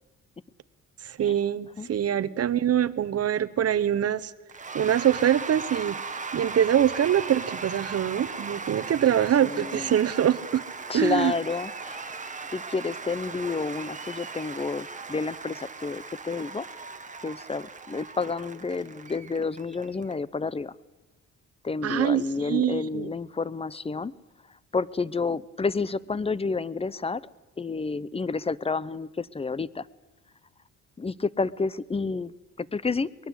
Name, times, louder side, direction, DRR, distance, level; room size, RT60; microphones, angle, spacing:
voice 1, 1.0-4.3 4.7-6.0 6.3-10.6 10.9-11.3 21.8-23.1, right 10 dB, 55° right, 13 dB, 1.1 m, -24 dB
Cheering / Applause / Crowd, 4.5-20.1, right 4 dB, 25° right, 1.7 m, -38 dB
voice 2, 9.4-9.9 10.9-12.2 12.5-16.7 17.2-20.7 21.6-24.1 24.5-27.3 27.6-29.9 31.0-33.1, left 4 dB, 20° left, 20 dB, 0.7 m, -30 dB
23.0 x 20.5 x 8.2 m, 1.2 s
cardioid pair, 90°, 30 cm